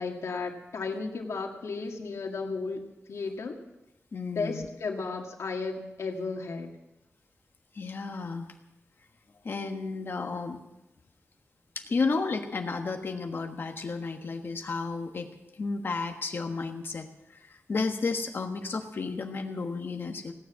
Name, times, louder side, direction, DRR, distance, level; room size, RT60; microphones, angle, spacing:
voice 1, 0.0-3.6 4.4-6.7, left 4 dB, 85° left, 1 dB, 2.0 m, -34 dB
voice 2, 4.1-4.7 7.7-8.5 9.4-10.6 11.7-15.3 15.5-20.3, left 4 dB, 50° left, 4 dB, 1.3 m, -32 dB
17.5 x 10.0 x 7.4 m, 0.93 s
wide cardioid pair, 175°, 5 cm